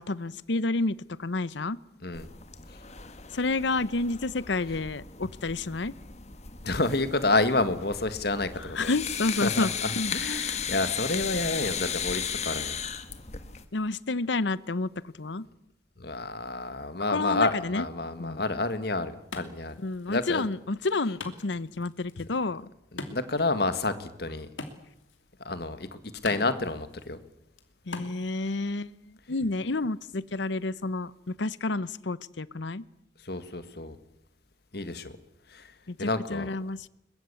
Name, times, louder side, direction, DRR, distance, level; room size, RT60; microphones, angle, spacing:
voice 1, 0.0-1.8 3.3-6.0 8.6-10.1 13.7-15.5 17.1-17.8 18.2-18.4 19.8-22.7 27.9-32.9 35.9-36.9, left 3 dB, 70° left, 19 dB, 0.8 m, -30 dB
sound 1, 2.1-13.6, left 7 dB, 35° left, 1.5 m, -36 dB
voice 2, 6.6-8.9 9.4-12.8 16.0-19.8 20.1-20.5 22.9-24.5 25.4-25.9 26.2-27.2 33.2-34.0 34.7-35.1 35.5-35.7 36.0-36.5, left 2 dB, 55° left, 11 dB, 1.8 m, -29 dB
Wood, 18.5-28.5, left 3 dB, 85° left, 2.8 m, -46 dB
22.0 x 21.5 x 8.4 m, 0.81 s
head